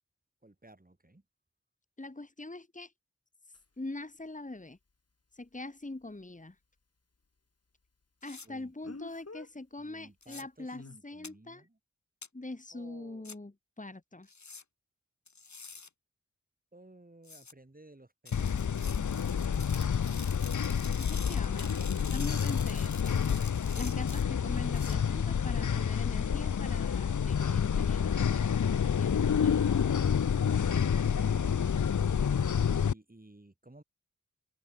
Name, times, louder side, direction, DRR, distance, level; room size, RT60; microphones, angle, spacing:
voice 1, 0.4-1.2 8.4-9.0 9.8-11.8 12.7-13.4 16.7-19.1 31.0-31.7 32.1-33.8, right 2 dB, 30° right, 6.9 m, -57 dB
voice 2, 2.0-2.9 3.8-4.8 5.3-6.6 8.2-11.7 12.3-14.3 20.9-23.2 23.8-28.4 28.7-29.5, left 2 dB, 25° left, 2.2 m, -43 dB
Speech, 3.5-3.6 8.8-9.5 10.7-11.0, left 3 dB, 55° left, 5.2 m, -46 dB
sound 1, 8.2-8.5 10.2-10.4 11.2-11.3 12.2-12.3 13.2-13.4 14.3-14.6 15.3-15.9 17.2-17.5 18.3-25.0, left 4 dB, 70° left, 5.0 m, -47 dB
sound 2, 18.3-32.9, left 7 dB, 90° left, 0.9 m, -28 dB
open air
cardioid pair, 45°, 29 cm